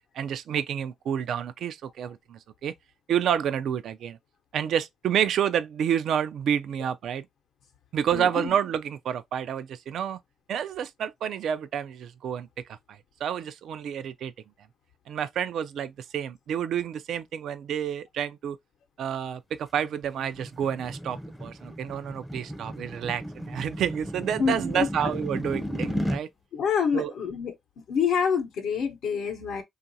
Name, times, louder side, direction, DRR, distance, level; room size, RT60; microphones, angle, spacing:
voice 1, 0.1-2.7 3.1-4.2 4.5-7.3 7.9-10.2 10.5-14.3 15.1-18.6 19.0-26.3 26.9-27.1, right 9 dB, 70° right, 0.4 m, -29 dB
voice 2, 8.1-8.6 24.4-25.1 26.5-27.5 27.9-29.6, left 6 dB, 75° left, 0.8 m, -27 dB
sound 1, 19.7-26.2, equal, 5° left, 0.5 m, -34 dB
3.0 x 2.4 x 2.7 m
cardioid pair, 90°, 0 cm